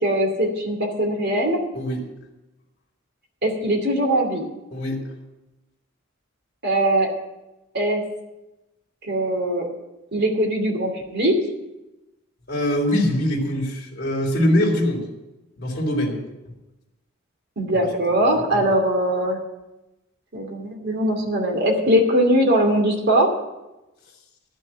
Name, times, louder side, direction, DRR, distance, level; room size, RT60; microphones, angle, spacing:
voice 1, 0.0-1.6 3.4-4.5 6.6-7.1 7.7-8.0 9.0-9.7 10.1-11.4 17.6-19.4 20.3-23.3, right 1 dB, 55° right, 1 dB, 2.6 m, -21 dB
voice 2, 4.7-5.0 12.5-15.1 15.6-16.2 18.5-18.6, left 1 dB, 50° left, -3 dB, 2.9 m, -22 dB
12.0 x 6.2 x 8.8 m, 0.99 s
head